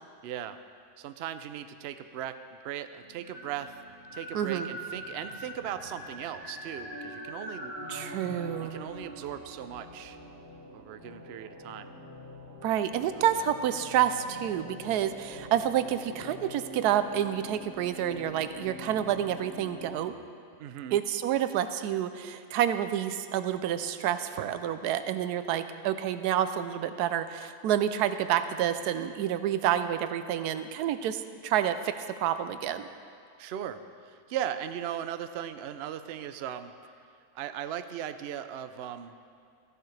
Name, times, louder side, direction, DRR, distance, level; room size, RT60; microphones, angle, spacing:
voice 1, 0.2-0.6 1.0-3.8 4.1-7.7 8.7-10.2 10.7-11.9 20.6-21.0 33.4-36.7 37.3-39.2, right 10 dB, 75° right, 10 dB, 0.6 m, -38 dB
sound 1, 3.0-20.1, equal, 15° left, 2.3 m, -44 dB
voice 2, 4.3-4.7 7.9-8.7 12.6-20.1 20.9-32.9, right 10 dB, 90° right, 11 dB, 1.1 m, -29 dB
14.5 x 11.0 x 3.2 m, 2.3 s
omnidirectional pair, 1.6 m